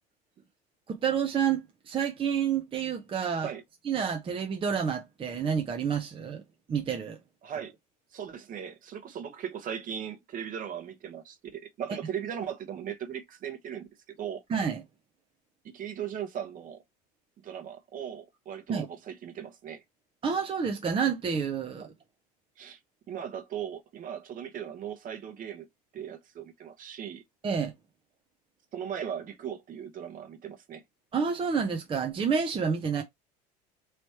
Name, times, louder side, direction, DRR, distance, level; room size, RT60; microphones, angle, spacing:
voice 1, 0.9-3.5 3.8-6.4 6.7-7.2 14.5-14.8 18.7-18.9 20.2-21.9 27.4-27.7 31.1-33.0, right 6 dB, 30° right, 0.7 m, -29 dB
voice 2, 7.4-7.8 8.1-13.9 14.2-14.4 15.6-16.8 17.4-19.8 21.8-21.9 22.6-22.8 23.1-25.7 25.9-27.2 28.7-30.8 32.9-33.0, right 9 dB, 45° right, 1.2 m, -38 dB
3.2 x 3.1 x 4.3 m
supercardioid pair, 90°, 19 cm